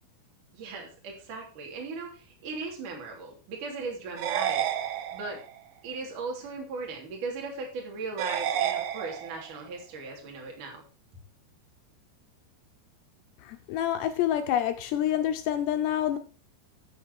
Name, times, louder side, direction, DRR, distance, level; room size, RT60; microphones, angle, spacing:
voice 1, 0.5-4.7 5.1-5.4 5.8-10.8, right 3 dB, 45° right, 4.0 m, -38 dB
sound 1, 4.2-5.6 8.2-9.6, right 10 dB, 80° right, 2.2 m, -30 dB
voice 2, 13.4-16.2, left 11 dB, 80° left, 2.5 m, -27 dB
14.0 x 6.7 x 4.7 m
omnidirectional pair, 5.7 m